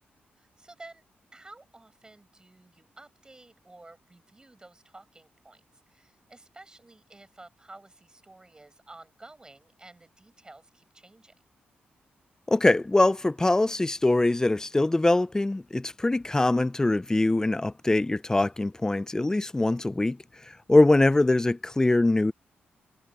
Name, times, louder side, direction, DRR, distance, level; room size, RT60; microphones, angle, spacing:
voice 1, 0.4-1.0 1.3-11.3, right 2 dB, 20° right, 6.9 m, -52 dB
voice 2, 12.5-20.2 20.7-22.3, left 2 dB, 15° left, 0.6 m, -23 dB
open air
cardioid pair, 85°, 4 cm